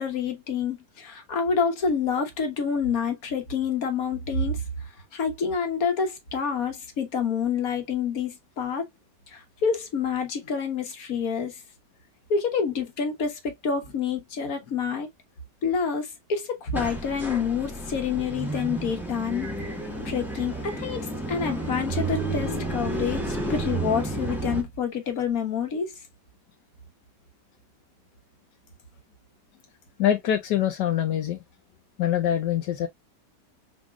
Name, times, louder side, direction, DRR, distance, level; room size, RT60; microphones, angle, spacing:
voice 1, 0.0-4.6 5.1-8.9 9.3-11.6 12.3-15.1 15.6-19.5 20.0-25.9, left 6 dB, 60° left, 1.5 m, -28 dB
sound 1, 16.7-24.6, right 2 dB, ahead, 0.9 m, -31 dB
voice 2, 30.0-31.4 32.0-32.9, left 10 dB, 85° left, 1.3 m, -24 dB
5.0 x 3.6 x 2.3 m
omnidirectional pair, 1.8 m